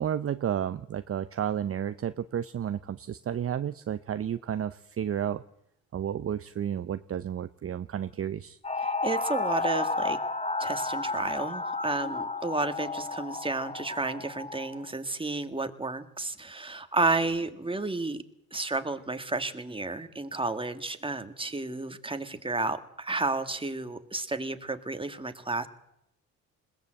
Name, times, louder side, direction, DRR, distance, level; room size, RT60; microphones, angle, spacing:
voice 1, 0.0-5.4 5.9-8.6, right 9 dB, 40° right, 12 dB, 0.7 m, -32 dB
sound 1, 8.6-14.8, left 3 dB, 20° left, 1.6 m, -32 dB
voice 2, 8.8-10.2 10.6-18.2 18.5-25.7, right 3 dB, 15° right, 8 dB, 1.9 m, -32 dB
21.0 x 17.0 x 7.8 m, 0.81 s
supercardioid pair, 70°, 35 cm